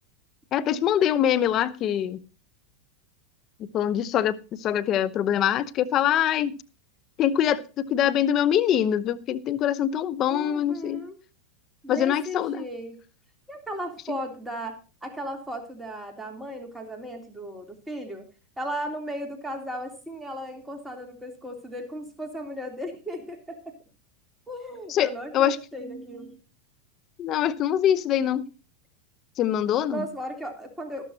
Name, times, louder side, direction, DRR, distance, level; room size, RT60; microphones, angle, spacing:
voice 1, 0.5-2.2 3.6-6.6 7.2-7.6 7.9-11.0 11.9-12.6 24.9-25.1 25.3-25.6 27.2-28.4 29.4-30.0, left 10 dB, 40° left, 15 dB, 0.8 m, -24 dB
voice 2, 10.2-11.2 11.8-13.0 13.5-18.3 18.6-23.7 24.5-26.4 29.8-31.1, equal, 5° right, 3 dB, 3.3 m, -36 dB
13.0 x 12.5 x 2.8 m, 0.32 s
hypercardioid pair, 110°, 0 cm